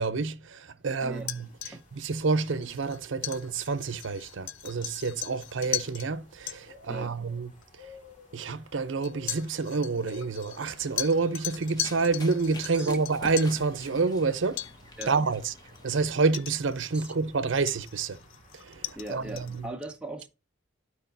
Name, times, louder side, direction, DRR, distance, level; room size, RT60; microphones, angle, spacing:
voice 1, 0.0-7.5 8.3-14.6 15.1-15.5 15.8-18.2 18.6-19.7, right 4 dB, 75° right, 0.6 m, -28 dB
sound 1, 1.1-19.7, left 3 dB, 40° left, 2.3 m, -55 dB
sound 2, 1.2-6.1 6.5-6.6 7.6-7.7 9.0-13.6 14.6-14.7 15.0-15.3 15.8-15.9 16.3-17.3 17.7-19.6, left 13 dB, 80° left, 0.4 m, -38 dB
Run, 10.6-16.2, left 1 dB, 20° left, 0.9 m, -47 dB
voice 2, 19.0-20.3, right 2 dB, 5° right, 0.5 m, -38 dB
12.5 x 4.8 x 2.6 m
head